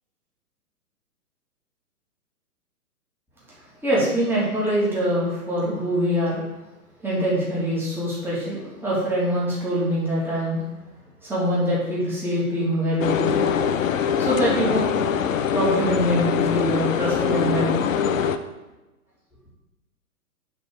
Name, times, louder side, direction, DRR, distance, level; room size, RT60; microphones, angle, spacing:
voice 1, 3.8-6.4 7.0-10.6 11.2-13.5 14.2-14.9 15.5-17.8, equal, 5° right, -8 dB, 3.0 m, -24 dB
sound 1, 13.0-18.4, left 7 dB, 60° left, 0.8 m, -23 dB
7.9 x 4.5 x 6.6 m, 1.1 s
figure-of-eight pair, 120°, 45 cm